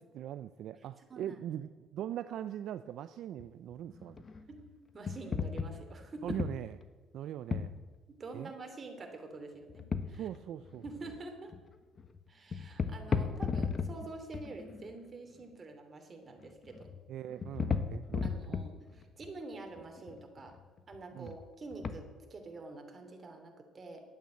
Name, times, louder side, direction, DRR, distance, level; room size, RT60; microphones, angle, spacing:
voice 1, 0.0-4.2 6.2-6.8 7.1-7.7 8.3-8.5 10.1-10.8 17.1-18.6 21.1-21.4, right 11 dB, 70° right, 12 dB, 0.4 m, -41 dB
sound 1, 3.4-3.5 3.7-4.7 5.1-6.8 7.5-7.8 9.7-10.4 10.6-11.2 11.5-11.7 12.0-12.2 12.5-14.1 14.3-15.0 16.4-17.0 17.3-19.3 19.8-21.0 21.3-21.4 21.7-21.9, left 5 dB, 40° left, 1.2 m, -36 dB
voice 2, 4.5-6.4 8.1-10.3 10.8-11.5 12.3-16.9 18.2-20.5 20.9-24.0, right 3 dB, 40° right, 4 dB, 3.0 m, -47 dB
11.0 x 8.6 x 9.2 m, 1.3 s
supercardioid pair, 75°, 0 cm